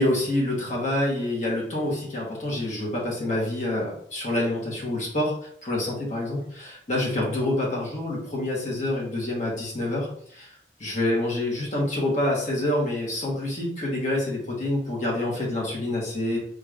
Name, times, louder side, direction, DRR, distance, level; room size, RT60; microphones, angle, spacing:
voice 1, 0.0-5.3 5.6-16.4, left 1 dB, 40° left, -3 dB, 1.2 m, -27 dB
3.2 x 2.4 x 3.2 m, 0.62 s
head